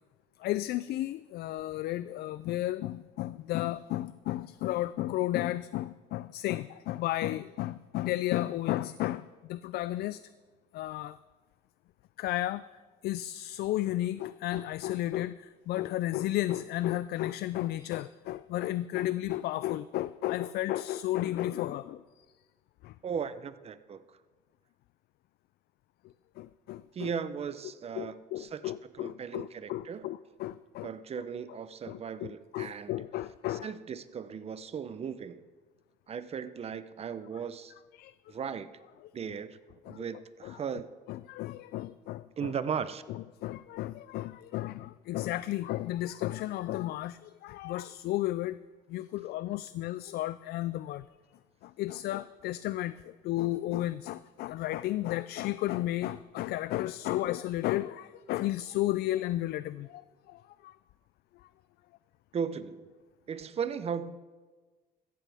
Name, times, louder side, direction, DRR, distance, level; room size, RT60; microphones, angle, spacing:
voice 1, 0.4-10.2 10.7-11.2 12.2-12.6 13.0-22.3 22.8-22.9 26.4-27.1 27.9-30.9 31.5-31.6 31.9-33.7 37.9-38.1 39.9-40.0 40.4-40.6 41.1-42.5 43.1-48.6 48.9-51.0 51.6-60.8, left 15 dB, 70° left, 15 dB, 0.4 m, -33 dB
voice 2, 23.0-24.2 26.9-30.1 30.8-33.0 33.5-35.4 36.1-37.7 38.3-38.7 39.1-40.9 42.4-43.0 62.3-62.9 63.3-64.2, right 7 dB, 35° right, 13 dB, 0.7 m, -37 dB
16.0 x 14.0 x 3.5 m, 1.3 s
cardioid pair, 110°, 17 cm